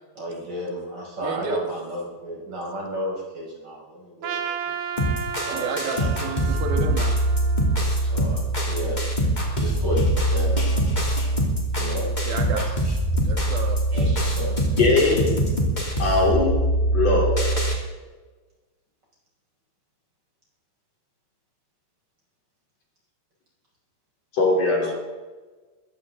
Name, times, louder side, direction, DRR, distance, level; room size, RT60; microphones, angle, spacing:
voice 1, 0.2-4.8 5.4-6.2 8.0-9.0 9.6-10.0 10.3-10.6 11.7-12.1 13.9-14.6, equal, 30° right, -3 dB, 5.9 m, -33 dB
voice 2, 1.2-1.6 5.5-7.1 12.3-12.6 13.2-13.8, right 5 dB, 85° right, 3 dB, 3.6 m, -30 dB
Trumpet, 4.2-8.5, right 8 dB, 70° right, 1.6 m, -34 dB
sound 1, 5.0-17.8, right 1 dB, 15° left, 2.3 m, -23 dB
voice 3, 14.8-15.3 16.0-16.6 16.9-17.3 24.3-24.9, left 3 dB, 45° left, -2 dB, 4.7 m, -20 dB
22.0 x 15.0 x 3.8 m, 1.3 s
omnidirectional pair, 4.1 m